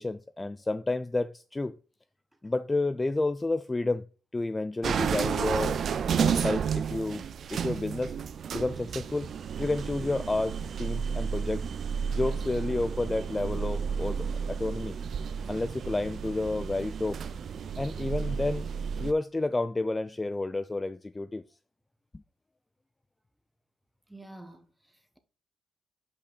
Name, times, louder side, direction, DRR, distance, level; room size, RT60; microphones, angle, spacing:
voice 1, 0.0-1.8 2.4-4.1 4.3-5.8 6.1-8.1 8.5-9.3 9.6-11.7 12.1-15.0 15.5-17.2 17.8-18.7 19.0-21.4, left 2 dB, 20° left, 0.3 m, -30 dB
sound 1, 4.8-19.1, right 7 dB, 55° right, 0.4 m, -32 dB
voice 2, 24.1-25.2, right 1 dB, 10° right, 1.2 m, -49 dB
5.6 x 5.1 x 4.0 m
cardioid pair, 90°, 0 cm